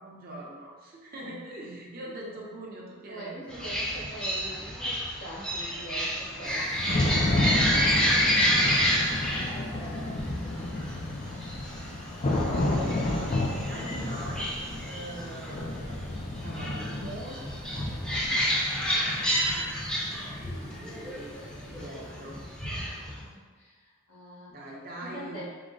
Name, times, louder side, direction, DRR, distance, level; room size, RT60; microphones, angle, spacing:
voice 1, 0.0-3.7 6.3-8.9 9.2-9.4 9.7-10.2 12.4-13.3 13.7-17.4 20.5-21.4 21.7-22.4 24.5-25.4, right 1 dB, 45° right, -3 dB, 0.8 m, -43 dB
voice 2, 3.1-6.6 9.2-9.9 17.7-18.1 23.3-24.6 25.0-25.5, right 1 dB, 85° left, -7 dB, 1.3 m, -44 dB
sound 1, 3.5-23.2, equal, 5° left, 0.7 m, -30 dB
Thunder / Rain, 6.5-22.2, left 2 dB, 35° left, 0.4 m, -32 dB
4.7 x 2.1 x 3.8 m, 1.4 s
head